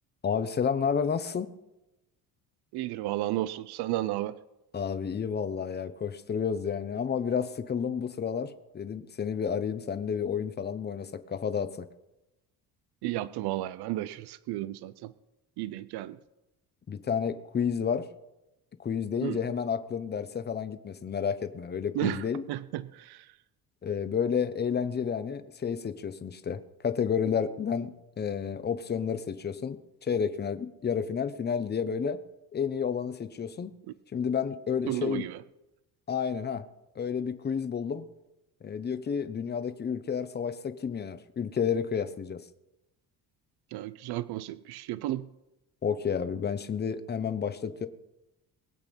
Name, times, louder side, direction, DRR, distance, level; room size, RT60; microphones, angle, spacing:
voice 1, 0.2-1.5 4.7-11.9 16.9-18.1 18.8-22.4 23.8-32.2 32.5-33.7 34.1-35.2 36.1-36.7 37.0-38.1 38.6-42.4 45.8-47.9, left 7 dB, 25° left, 11 dB, 0.8 m, -31 dB
voice 2, 2.7-4.3 13.0-15.1 15.6-16.2 19.2-19.4 21.9-23.3 34.9-35.4 43.7-45.3, right 15 dB, 80° right, 16 dB, 0.6 m, -33 dB
22.0 x 8.2 x 5.3 m, 0.96 s
cardioid pair, 145°, 38 cm